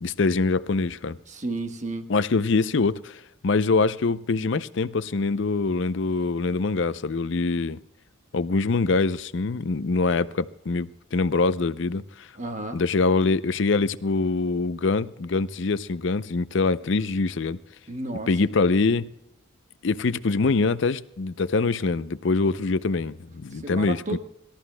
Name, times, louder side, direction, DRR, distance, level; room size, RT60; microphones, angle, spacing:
voice 1, 0.0-1.2 2.1-7.8 8.3-12.3 12.7-17.6 18.3-19.1 19.8-24.2, left 3 dB, 60° left, 0.5 m, -24 dB
voice 2, 1.3-2.0 12.4-12.8 17.9-18.3 23.5-24.2, right 2 dB, 35° right, 1.2 m, -32 dB
24.5 x 13.0 x 2.2 m
head